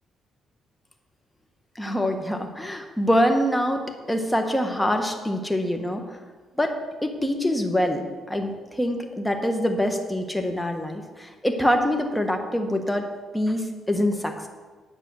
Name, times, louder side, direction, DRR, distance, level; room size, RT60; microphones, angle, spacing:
voice 1, 1.7-6.0 6.6-6.8 7.0-13.0 13.3-14.5, equal, 5° left, 4 dB, 1.5 m, -25 dB
9.7 x 7.5 x 6.4 m, 1.4 s
cardioid pair, 90°, 0 cm